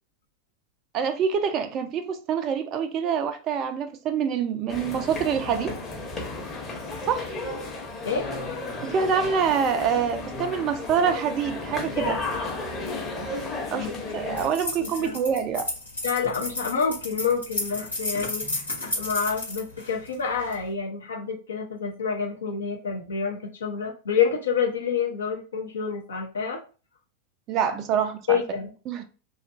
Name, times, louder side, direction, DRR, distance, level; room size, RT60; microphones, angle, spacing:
voice 1, 0.9-5.8 7.1-7.3 8.8-12.2 13.7-15.7 27.5-28.4 28.9-29.0, right 7 dB, 35° right, 0.3 m, -26 dB
sound 1, 4.7-14.5, left 3 dB, 20° left, 0.9 m, -33 dB
sound 2, 14.4-20.6, left 2 dB, 85° left, 1.2 m, -32 dB
voice 2, 14.8-15.2 16.0-26.6 28.3-28.7, left 6 dB, 70° left, 0.7 m, -28 dB
2.7 x 2.4 x 2.3 m
figure-of-eight pair, 90°, 0 cm